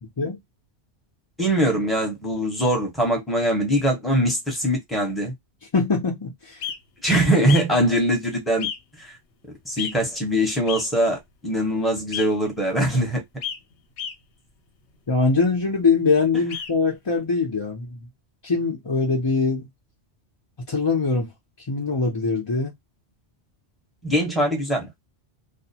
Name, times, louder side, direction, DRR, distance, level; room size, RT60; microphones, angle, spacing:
voice 1, 1.4-5.3 7.0-8.7 9.0-9.1 9.6-13.2 24.0-24.9, right 1 dB, ahead, 0.8 m, -22 dB
voice 2, 5.7-6.6 15.1-18.1 18.4-19.7 20.7-21.3 21.7-22.7, left 4 dB, 30° left, 0.5 m, -22 dB
sound 1, 6.6-6.8 7.5-7.6 8.6-8.8 9.8-9.9 10.7-10.8 12.1-12.3 13.4-13.6 14.0-14.1 16.5-16.7, left 9 dB, 80° left, 0.9 m, -30 dB
2.4 x 2.1 x 2.7 m
omnidirectional pair, 1.1 m